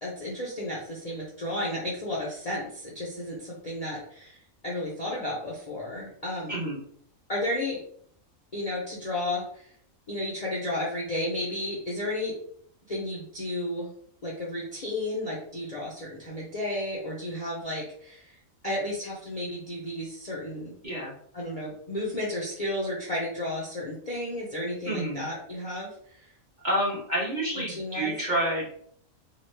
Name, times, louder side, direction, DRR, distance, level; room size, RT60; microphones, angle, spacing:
voice 1, 0.0-4.4 4.6-6.6 7.3-7.8 8.5-9.7 10.1-12.3 12.9-13.9 14.2-18.4 18.6-20.7 21.3-26.3 27.7-28.1, left 1 dB, 40° left, -6 dB, 0.6 m, -33 dB
voice 2, 6.5-6.8 20.8-21.1 24.9-25.2 26.6-28.7, right 1 dB, 35° right, -6 dB, 1.1 m, -28 dB
3.0 x 2.3 x 3.2 m, 0.63 s
omnidirectional pair, 1.4 m